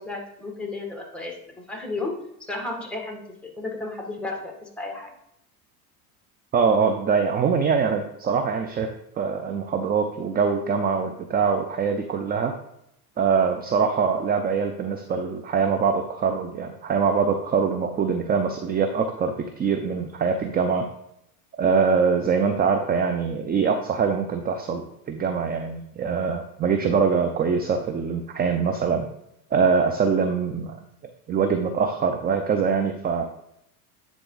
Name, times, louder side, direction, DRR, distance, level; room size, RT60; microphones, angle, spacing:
voice 1, 0.0-2.1 2.4-5.1, left 2 dB, ahead, 1 dB, 1.9 m, -33 dB
voice 2, 6.5-12.6 13.2-20.9 21.6-29.1 29.5-30.8 31.3-33.2, right 5 dB, 20° right, 6 dB, 0.5 m, -23 dB
9.9 x 3.7 x 3.9 m, 0.78 s
hypercardioid pair, 95°, 46 cm